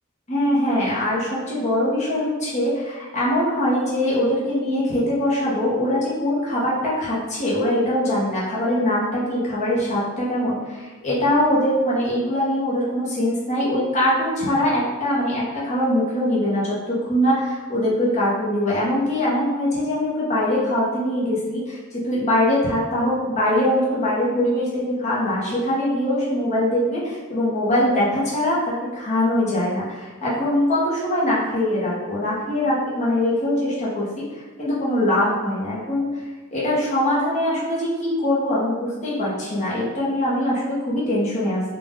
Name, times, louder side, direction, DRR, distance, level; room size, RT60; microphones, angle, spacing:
voice 1, 0.3-36.2 36.5-41.6, left 1 dB, 35° left, -7 dB, 0.9 m, -22 dB
3.9 x 2.4 x 3.6 m, 1.3 s
head